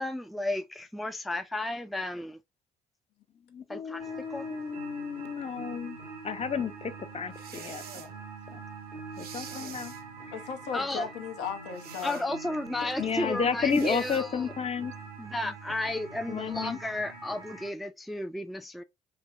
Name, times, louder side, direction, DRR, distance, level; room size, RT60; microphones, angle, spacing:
voice 1, 0.0-2.4 3.7-4.0 4.3-4.4 10.7-11.1 12.0-14.5 15.2-18.8, left 1 dB, ahead, 0.4 m, -33 dB
voice 2, 3.5-6.0 6.2-8.1 8.5-8.6 9.2-9.9 13.0-14.9 16.3-16.8, left 6 dB, 35° left, 0.7 m, -32 dB
sound 1, 4.0-17.7, right 4 dB, 85° right, 1.0 m, -44 dB
sound 2, 7.3-8.1 9.1-10.0 11.8-12.3 13.7-14.2, right 8 dB, 55° right, 0.7 m, -45 dB
voice 3, 10.3-12.3 13.0-13.4 15.4-15.5, left 7 dB, 65° left, 0.8 m, -37 dB
3.4 x 2.9 x 2.4 m
figure-of-eight pair, 40°, 19 cm